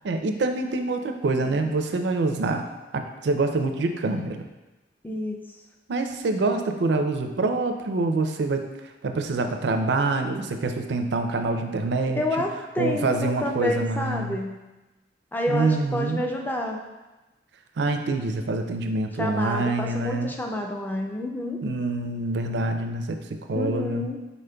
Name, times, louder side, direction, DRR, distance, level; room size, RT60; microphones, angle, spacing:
voice 1, 0.0-2.7 2.9-4.5 5.9-8.6 9.0-12.2 12.8-14.4 15.5-16.2 17.8-20.3 21.6-24.0, right 3 dB, 75° right, 6 dB, 0.4 m, -26 dB
voice 2, 5.0-5.3 12.2-14.7 15.3-16.8 19.2-21.6 23.5-24.2, left 1 dB, 10° left, 1 dB, 0.4 m, -29 dB
5.0 x 4.1 x 2.2 m, 1.1 s
head